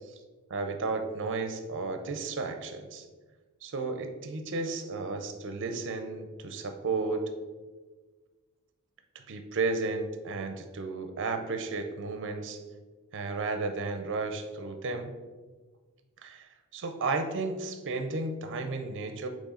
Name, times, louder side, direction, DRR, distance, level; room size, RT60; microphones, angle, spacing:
voice 1, 0.5-3.1 3.6-7.2 9.3-12.6 13.1-15.1 16.2-19.3, right 3 dB, 55° right, 7 dB, 0.6 m, -33 dB
8.2 x 3.2 x 3.8 m, 1.4 s
head